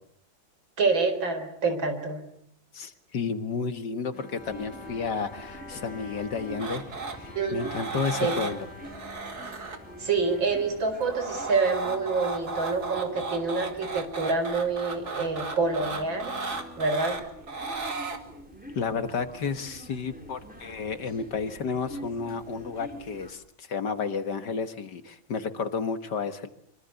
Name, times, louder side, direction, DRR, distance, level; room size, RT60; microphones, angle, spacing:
voice 1, 0.8-2.2 7.3-7.6 8.2-8.4 10.0-16.3 16.8-17.2, right 4 dB, 65° right, 8 dB, 5.0 m, -27 dB
voice 2, 2.7-6.9 7.2-8.7 18.8-26.5, left 5 dB, 55° left, 10 dB, 2.0 m, -32 dB
Bowed string instrument, 4.1-11.5, left 2 dB, 35° left, 3.1 m, -47 dB
sound 1, 4.4-23.3, equal, 5° right, 4.2 m, -46 dB
sound 2, 6.6-7.2 7.6-8.5 8.8-9.8 10.8-18.2 19.9-20.0, right 3 dB, 50° right, 2.9 m, -35 dB
25.5 x 25.5 x 8.1 m, 0.66 s
omnidirectional pair, 2.2 m